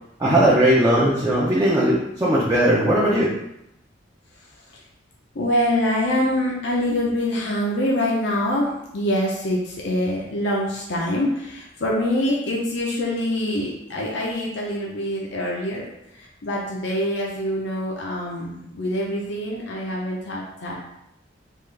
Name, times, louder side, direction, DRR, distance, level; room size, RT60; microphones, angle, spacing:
voice 1, 0.2-3.3, right 1 dB, 15° right, -7 dB, 0.5 m, -18 dB
voice 2, 5.3-15.8 16.2-20.7, left 1 dB, 70° left, -3 dB, 0.6 m, -25 dB
3.6 x 2.5 x 3.2 m, 0.82 s
head